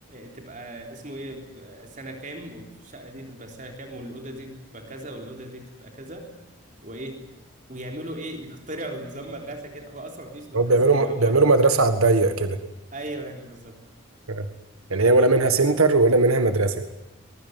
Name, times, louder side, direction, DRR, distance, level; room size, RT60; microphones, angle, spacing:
voice 1, 0.1-6.3 6.8-7.2 7.7-11.4 12.9-13.7, right 1 dB, 35° right, 3 dB, 3.5 m, -38 dB
voice 2, 10.5-12.6 14.3-14.5 14.9-16.8, right 3 dB, 85° right, 8 dB, 1.7 m, -19 dB
24.5 x 21.5 x 9.4 m, 0.95 s
head